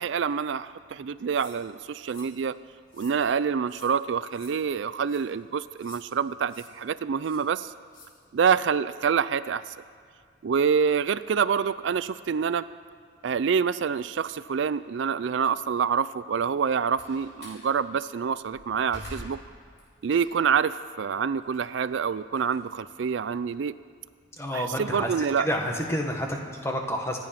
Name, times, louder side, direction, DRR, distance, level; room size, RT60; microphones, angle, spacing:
voice 1, 0.0-2.6 2.9-7.7 8.3-9.7 10.4-12.6 13.2-19.4 20.0-23.7 24.5-25.5, right 6 dB, 65° right, 15 dB, 0.4 m, -26 dB
sound 1, 1.3-1.6 2.0-2.3 2.9-3.2 3.7-3.9 4.3-4.5 5.0-5.2 5.8-6.0 6.5-6.7 7.2-7.4 7.9-8.1, left 4 dB, 85° left, 3.6 m, -51 dB
Slam, 16.5-17.7 18.2-20.6 21.0-23.4, left 1 dB, 55° left, 4.9 m, -46 dB
voice 2, 24.4-27.2, equal, 15° left, 2 dB, 1.5 m, -29 dB
25.5 x 9.4 x 5.9 m, 2.1 s
head